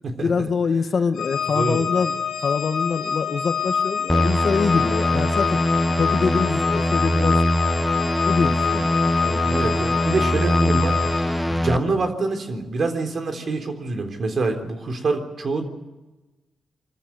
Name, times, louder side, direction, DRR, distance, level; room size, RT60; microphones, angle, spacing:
voice 1, 0.2-5.6 6.0-7.7 8.2-9.4, left 5 dB, 60° left, 9 dB, 1.4 m, -25 dB
Organ, 1.1-11.6, left 7 dB, 85° left, 2.4 m, -26 dB
voice 2, 1.5-1.9 9.4-11.0 11.5-15.7, right 3 dB, 60° right, 6 dB, 3.7 m, -25 dB
sound 1, 4.1-11.8, equal, 5° left, 1.0 m, -22 dB
25.0 x 14.0 x 9.3 m, 1.1 s
cardioid pair, 70°, 0 cm